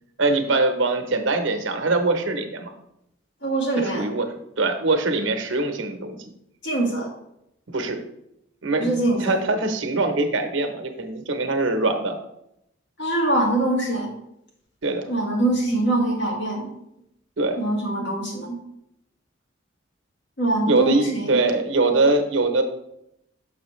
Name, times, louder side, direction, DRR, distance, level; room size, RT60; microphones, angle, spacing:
voice 1, 0.2-2.7 3.8-4.3 4.6-6.2 7.7-8.0 8.6-12.1 14.8-15.1 17.4-17.6 20.6-22.6, right 3 dB, 75° right, 6 dB, 0.9 m, -22 dB
voice 2, 3.4-4.0 6.6-7.1 8.8-9.3 13.0-14.1 15.1-16.7 17.6-18.6 20.4-21.4, right 1 dB, 65° left, -1 dB, 1.8 m, -23 dB
6.8 x 5.9 x 3.1 m, 0.81 s
head